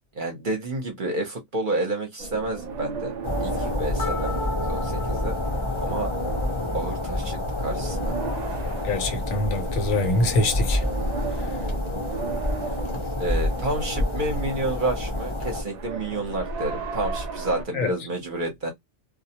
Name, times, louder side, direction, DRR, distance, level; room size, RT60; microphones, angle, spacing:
voice 1, 0.2-3.1 3.4-4.3 4.7-5.4 5.8-6.1 6.7-8.2 13.2-18.7, right 2 dB, 50° right, 0.7 m, -29 dB
sound 1, 2.2-17.6, right 4 dB, 70° right, 0.4 m, -36 dB
sound 2, 3.2-15.6, left 1 dB, 35° left, 0.5 m, -28 dB
sound 3, 4.0-6.9, left 2 dB, 65° left, 0.9 m, -36 dB
voice 2, 8.9-10.8 17.7-17.9, left 2 dB, 90° left, 1.1 m, -24 dB
2.3 x 2.0 x 2.7 m
omnidirectional pair, 1.3 m